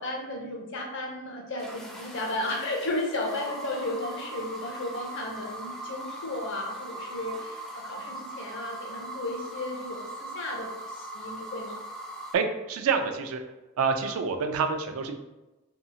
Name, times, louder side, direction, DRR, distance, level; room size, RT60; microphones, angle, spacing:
voice 1, 0.0-11.8, left 2 dB, 55° left, 0 dB, 0.6 m, -34 dB
sound 1, 1.6-12.3, right 1 dB, ahead, 0.4 m, -40 dB
voice 2, 12.3-13.4 13.8-15.2, right 5 dB, 70° right, 6 dB, 0.3 m, -27 dB
2.7 x 2.3 x 2.7 m, 1.1 s
head